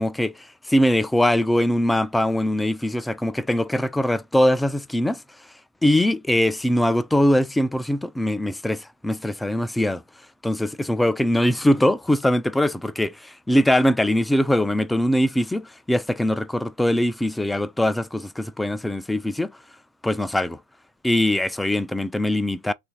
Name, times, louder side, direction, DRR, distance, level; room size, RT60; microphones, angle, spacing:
voice 1, 0.0-5.2 5.8-10.0 10.4-19.5 20.0-20.6 21.0-22.7, left 1 dB, 5° left, 0.3 m, -22 dB
3.0 x 2.5 x 4.4 m
figure-of-eight pair, 90°, 0 cm